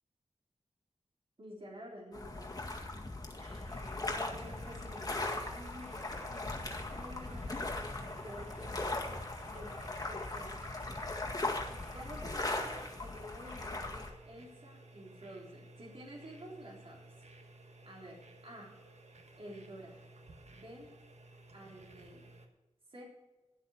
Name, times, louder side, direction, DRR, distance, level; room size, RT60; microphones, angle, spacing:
voice 1, 1.4-2.9 3.3-3.7 4.1-6.0 6.3-6.5 6.9-10.6 11.9-17.2 17.8-18.7 19.4-20.0 20.5-20.9 21.5-22.3 22.9-23.0, equal, 50° right, -2 dB, 3.6 m, -50 dB
sound 1, 2.1-14.1, left 2 dB, 30° left, 1.9 m, -39 dB
sound 2, 3.7-22.5, right 2 dB, 70° right, 1.4 m, -55 dB
12.0 x 7.9 x 6.3 m, 1.1 s
wide cardioid pair, 75°, 12 cm